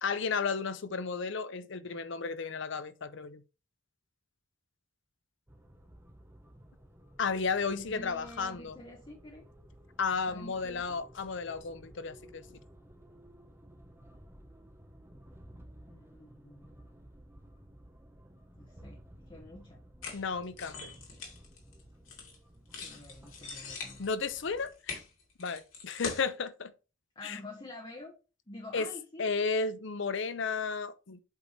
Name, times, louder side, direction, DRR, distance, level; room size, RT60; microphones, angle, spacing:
voice 1, 0.0-3.4 7.2-8.8 10.0-12.6 20.1-21.0 24.0-25.0 25.4-26.7 27.2-27.4 28.7-28.9 29.2-31.2, left 5 dB, 65° left, 0.6 m, -33 dB
sound 1, 5.5-24.7, equal, 10° right, 0.8 m, -55 dB
voice 2, 7.6-9.5 10.3-10.9 15.9-16.9 18.6-19.0 19.3-19.8 22.8-24.1 27.1-28.1 28.5-29.3, left 1 dB, 25° left, 1.0 m, -48 dB
sound 2, 20.0-22.4 22.7-26.2, left 4 dB, 80° left, 2.3 m, -42 dB
8.1 x 3.4 x 4.1 m
head